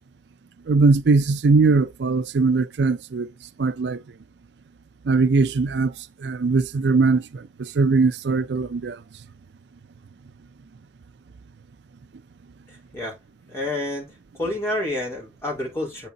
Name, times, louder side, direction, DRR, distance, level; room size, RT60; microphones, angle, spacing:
voice 1, 0.7-3.3 3.6-4.0 5.1-5.9 6.2-9.0, right 4 dB, 75° right, 0.5 m, -20 dB
voice 2, 12.7-13.2 13.5-14.1 14.4-16.1, left 1 dB, 15° left, 3.6 m, -29 dB
7.8 x 4.2 x 3.9 m
head